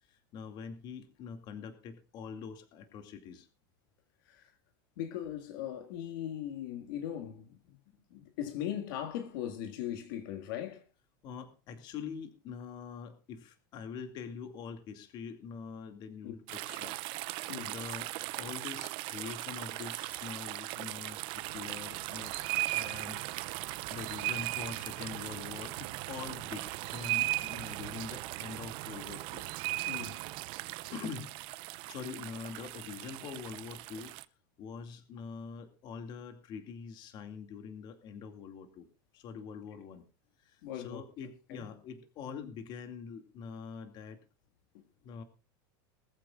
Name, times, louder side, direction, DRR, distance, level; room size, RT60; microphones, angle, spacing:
voice 1, 0.1-3.5 7.9-8.0 11.2-17.0 17.7-18.1 18.4-22.3 22.7-23.2 23.9-29.4 30.9-31.3 31.8-34.2 34.6-38.9 39.1-40.0 40.4-44.2 45.0-45.2, left 6 dB, 40° left, 2.3 m, -44 dB
voice 2, 5.0-7.8 8.1-10.8 16.2-16.4 17.5-17.7 29.9-30.2 40.6-41.0 41.5-41.7 44.7-44.8, left 10 dB, 70° left, 2.0 m, -39 dB
sound 1, 16.5-34.2, right 20 dB, 45° right, 0.7 m, -38 dB
21.0 x 14.5 x 2.4 m
supercardioid pair, 155°, 12 cm